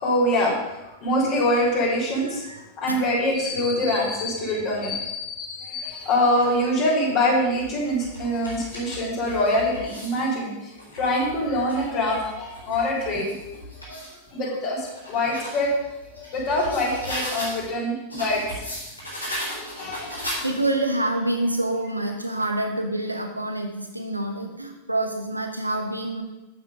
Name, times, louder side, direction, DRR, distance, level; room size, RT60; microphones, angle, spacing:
voice 1, 0.0-2.4 2.8-10.5 10.9-13.3 13.9-14.0 14.3-14.8 15.1-15.8 16.1-18.4 19.3-20.5, left 1 dB, 40° left, -5 dB, 3.7 m, -24 dB
voice 2, 2.3-3.0 20.4-26.2, right 1 dB, 85° right, 4 dB, 1.3 m, -27 dB
sound 1, 5.8-6.6 7.3-10.3 10.7-14.2 14.6-17.7 18.1-20.8, equal, 85° left, 3.9 m, -37 dB
8.2 x 7.7 x 5.1 m, 0.99 s
figure-of-eight pair, 90°, 0 cm